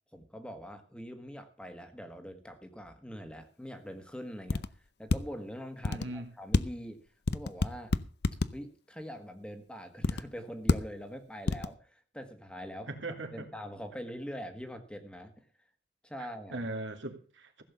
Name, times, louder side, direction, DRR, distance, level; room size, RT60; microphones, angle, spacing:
voice 1, 0.1-4.6 5.0-7.0 7.3-8.0 8.5-13.0 13.3-15.4 16.0-16.6, equal, 5° left, 6 dB, 1.5 m, -43 dB
sound 1, 4.5-4.7 5.1-5.2 5.8-6.1 6.5-6.6 7.3-8.5 10.0-10.2 10.7-10.8 11.5-11.7, left 3 dB, 60° left, 0.6 m, -26 dB
voice 2, 5.9-6.3 12.9-13.5 16.2-17.6, right 2 dB, 80° right, 5 dB, 2.5 m, -39 dB
15.5 x 7.6 x 6.9 m, 0.39 s
head